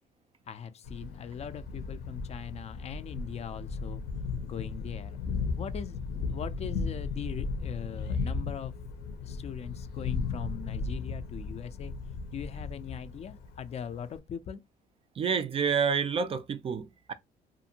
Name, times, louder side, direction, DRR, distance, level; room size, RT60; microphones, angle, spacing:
voice 1, 0.5-4.0 4.4-5.2 5.6-6.0 6.3-8.7 9.2-11.9 12.3-14.6, left 8 dB, 40° left, 0.4 m, -40 dB
Thunder, 0.8-14.2, left 4 dB, 80° left, 0.7 m, -36 dB
voice 2, 15.1-17.1, right 6 dB, 35° right, 0.4 m, -29 dB
2.5 x 2.5 x 2.8 m
cardioid pair, 110°, 17 cm